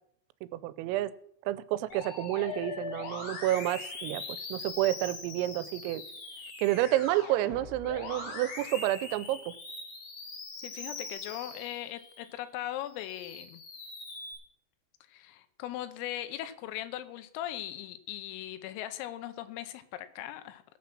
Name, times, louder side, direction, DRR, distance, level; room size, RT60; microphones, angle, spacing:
voice 1, 0.5-1.1 1.4-4.2 4.5-6.0 6.6-9.5, right 15 dB, 90° right, 16 dB, 3.3 m, -30 dB
Musical instrument, 1.9-12.3 12.8-14.3, left 3 dB, 65° left, 5.7 m, -42 dB
voice 2, 10.6-13.6 15.1-20.6, left 13 dB, 90° left, 12 dB, 3.5 m, -39 dB
17.0 x 7.4 x 6.0 m, 0.70 s
omnidirectional pair, 5.8 m